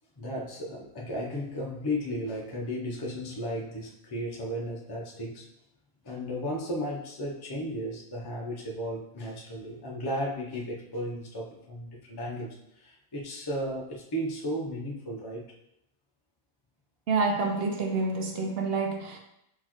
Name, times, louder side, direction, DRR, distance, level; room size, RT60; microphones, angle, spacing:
voice 1, 0.2-5.5 6.0-15.4, equal, 25° left, -2 dB, 0.6 m, -34 dB
voice 2, 17.1-19.2, right 3 dB, 60° right, 2 dB, 0.7 m, -28 dB
4.2 x 4.2 x 3.0 m, 0.81 s
omnidirectional pair, 1.3 m